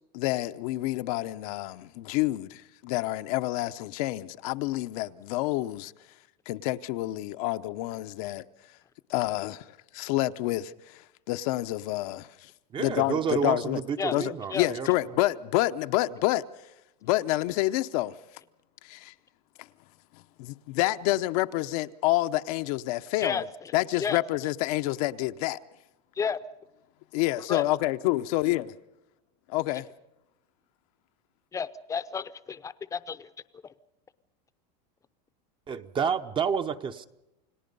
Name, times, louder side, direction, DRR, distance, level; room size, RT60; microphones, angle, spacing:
voice 1, 0.1-5.9 6.5-8.4 9.1-9.7 9.9-12.5 12.8-13.8 14.1-16.4 17.0-18.1 18.8-19.1 20.4-23.4 23.7-25.6 27.1-28.7 29.5-29.9, left 17 dB, 60° left, 0.8 m, -28 dB
voice 2, 12.7-14.9 35.7-37.1, right 6 dB, 25° right, 0.8 m, -29 dB
voice 3, 23.2-23.7 24.0-24.2 26.2-26.4 27.5-27.7 31.5-33.3 33.6-33.7, left 6 dB, 15° left, 0.7 m, -32 dB
29.0 x 18.5 x 5.4 m
supercardioid pair, 140°, 21 cm